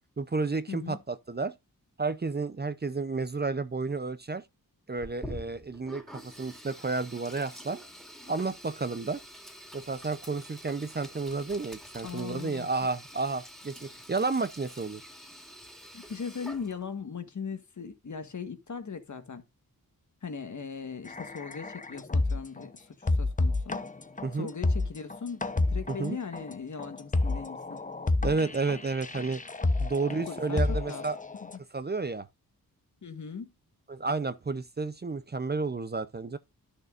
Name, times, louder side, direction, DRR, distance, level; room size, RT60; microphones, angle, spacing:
voice 1, 0.2-1.5 2.0-4.4 4.9-7.8 8.3-9.2 9.7-15.1 24.2-24.5 26.0-26.2 28.2-29.4 29.8-31.2 31.7-32.3 33.9-36.4, right 3 dB, 30° right, 0.6 m, -31 dB
voice 2, 0.7-1.0 12.0-12.7 15.9-19.4 20.2-23.8 24.3-27.8 30.3-31.0 33.0-33.5, left 6 dB, 55° left, 1.6 m, -39 dB
Sink (filling or washing), 5.0-17.0, equal, ahead, 2.4 m, -47 dB
sound 1, 21.1-22.6 23.0-31.6, left 2 dB, 20° left, 0.9 m, -30 dB
13.0 x 6.7 x 2.5 m
wide cardioid pair, 125°, 36 cm